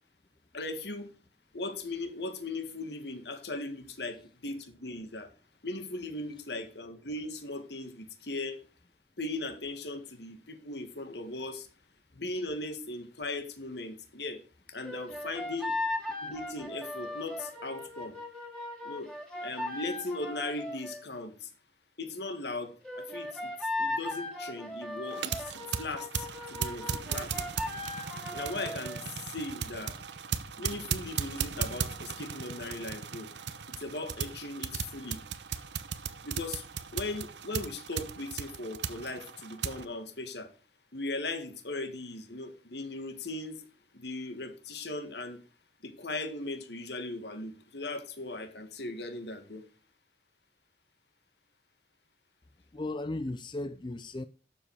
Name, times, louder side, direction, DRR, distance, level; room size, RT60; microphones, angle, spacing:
voice 1, 0.5-1.1 1.5-5.3 5.6-8.6 9.2-11.7 12.1-14.4 14.7-15.8 16.2-18.2 18.8-19.1 19.4-21.5 22.0-23.5 23.8-27.3 28.3-29.0 29.3-30.0 30.6-33.3 33.8-35.2 36.2-36.6 36.9-40.5 40.9-43.6 43.9-45.4 45.8-49.6, left 2 dB, 70° left, 1.9 m, -38 dB
sound 1, 14.8-21.0 22.8-29.0, left 2 dB, 5° left, 2.4 m, -37 dB
Stationary Gas Engine, 25.1-39.8, right 6 dB, 75° right, 0.9 m, -37 dB
voice 2, 52.7-54.2, left 2 dB, 25° left, 0.5 m, -36 dB
12.0 x 7.4 x 4.9 m
head